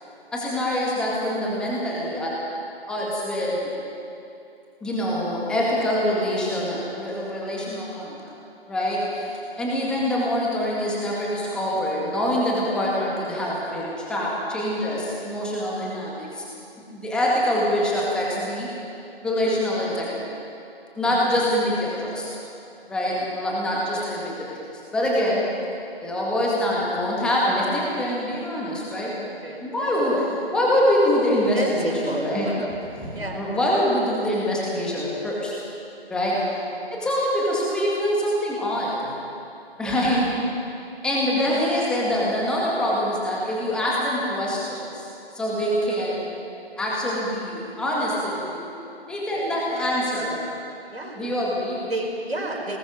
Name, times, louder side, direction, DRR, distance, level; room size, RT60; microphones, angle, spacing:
voice 1, 0.3-2.4 2.9-3.7 4.8-8.3 8.7-9.3 9.6-16.4 16.9-18.7 19.2-20.2 21.0-22.3 22.9-24.5 24.9-25.4 26.0-29.3 29.6-30.3 30.5-32.5 33.0-35.5 36.1-36.5 36.9-39.1 39.8-40.2 41.0-45.1 45.3-46.4 46.8-48.7 49.1-50.4 51.2-51.8, equal, 5° left, -5 dB, 2.0 m, -25 dB
voice 2, 21.0-21.4 23.0-23.3 23.9-24.1 29.4-30.4 30.7-30.8 31.5-32.7 33.1-33.5 36.2-36.6 39.8-40.3 49.3-49.6 50.9-51.2 51.8-52.8, right 1 dB, 70° right, 0 dB, 4.7 m, -33 dB
25.0 x 20.0 x 5.2 m, 2.7 s
figure-of-eight pair, 145°, 31 cm